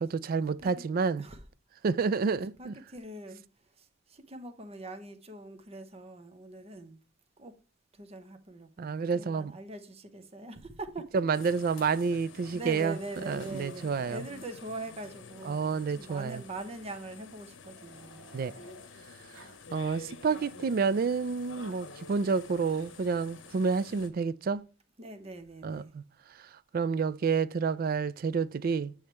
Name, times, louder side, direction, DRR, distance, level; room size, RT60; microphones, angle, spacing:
voice 1, 0.0-1.2 1.8-2.7 8.8-9.5 11.1-13.0 13.3-14.2 15.5-16.4 18.3-18.5 19.7-24.6 25.6-26.0 26.7-28.9, right 5 dB, 50° right, 0.3 m, -29 dB
voice 2, 2.3-7.0 7.4-7.6 7.9-11.2 12.3-18.3 25.0-25.9, right 2 dB, 30° right, 0.8 m, -43 dB
sound 1, 11.3-24.1, left 5 dB, 75° left, 0.8 m, -49 dB
Growling, 14.4-14.6 14.9-15.0 16.1-18.9 19.3-19.6 19.9-20.6 21.3-21.7 22.6-23.0 23.8-24.1 25.2-25.9, right 1 dB, 70° right, 1.6 m, -59 dB
8.5 x 3.2 x 4.3 m
head